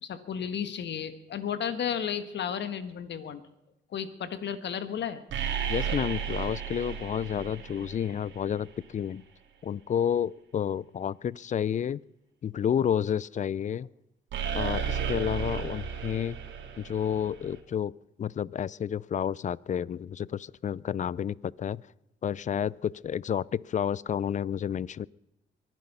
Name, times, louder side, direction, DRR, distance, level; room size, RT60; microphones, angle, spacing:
voice 1, 0.0-3.4 3.9-5.2 15.4-15.6, left 8 dB, 60° left, 11 dB, 1.6 m, -33 dB
sound 1, 5.3-8.5 14.3-17.6, right 7 dB, 70° right, 2.9 m, -34 dB
voice 2, 5.7-9.2 9.6-12.0 12.4-13.9 14.5-16.4 16.8-17.9 18.2-21.8 22.2-25.1, left 8 dB, 40° left, 24 dB, 0.4 m, -30 dB
23.0 x 10.5 x 5.5 m, 0.90 s
cardioid pair, 90°, 20 cm